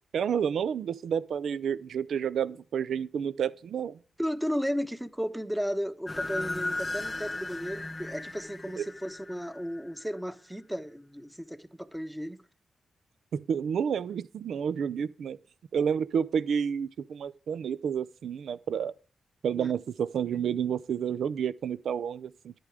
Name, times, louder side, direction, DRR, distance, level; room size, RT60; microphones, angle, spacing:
voice 1, 0.1-4.0 8.8-8.9 13.3-15.4 15.7-18.9 19.4-22.5, right 7 dB, 75° right, 0.4 m, -30 dB
voice 2, 4.2-12.4 19.5-19.7, equal, 5° right, 1.1 m, -34 dB
sound 1, 6.1-10.0, left 2 dB, 25° left, 0.7 m, -36 dB
11.0 x 8.8 x 4.8 m
supercardioid pair, 50°, 0 cm